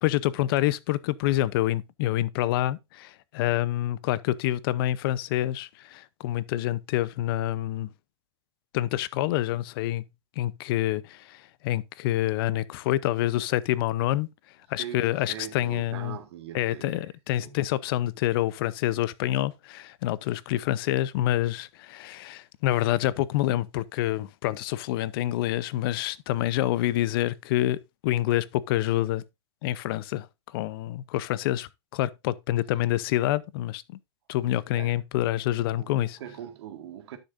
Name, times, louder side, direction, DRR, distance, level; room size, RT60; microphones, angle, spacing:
voice 1, 0.0-7.9 8.7-10.0 10.4-14.3 14.7-16.2 16.5-29.2 29.6-30.3 30.5-34.0 34.3-36.2, left 14 dB, 55° left, 0.7 m, -27 dB
voice 2, 14.8-17.1 17.4-17.7 34.8-34.9 35.8-37.2, right 10 dB, 70° right, 1.9 m, -41 dB
11.5 x 6.6 x 2.6 m
hypercardioid pair, 140°, 15 cm